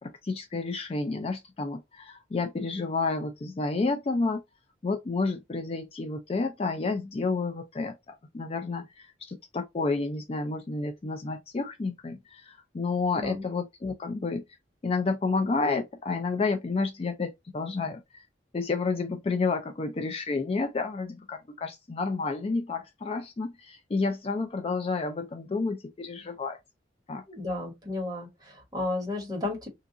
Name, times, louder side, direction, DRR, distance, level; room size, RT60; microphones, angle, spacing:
voice 1, 0.0-4.4 4.8-14.4 14.8-18.2 18.5-26.6 27.1-27.2, left 3 dB, 30° left, 0.4 m, -30 dB
voice 2, 27.3-29.7, left 2 dB, 20° right, 1.2 m, -33 dB
2.8 x 2.4 x 3.6 m
head